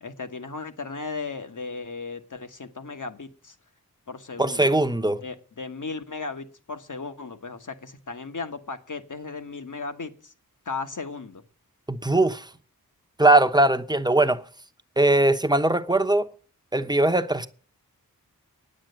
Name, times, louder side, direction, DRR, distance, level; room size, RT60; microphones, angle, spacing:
voice 1, 0.0-3.5 4.1-4.7 5.2-10.3 10.6-11.4, left 4 dB, 55° left, 1.4 m, -36 dB
voice 2, 4.4-5.2 11.9-12.5 13.2-14.4 15.0-16.3 16.7-17.5, right 2 dB, 10° right, 0.9 m, -20 dB
9.6 x 7.6 x 7.9 m
wide cardioid pair, 75°, 37 cm